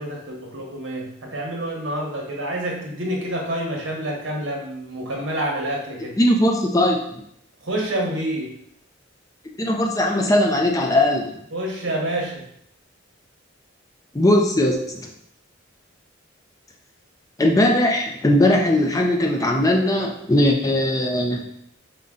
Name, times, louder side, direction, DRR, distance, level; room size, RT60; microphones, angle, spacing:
voice 1, 0.0-6.2 7.6-8.5 11.5-12.4, right 1 dB, 65° right, -1 dB, 1.0 m, -28 dB
voice 2, 6.2-7.2 9.6-11.4 14.1-15.1 17.4-21.5, left 1 dB, 15° left, 1 dB, 0.5 m, -19 dB
5.3 x 2.2 x 3.6 m, 0.72 s
head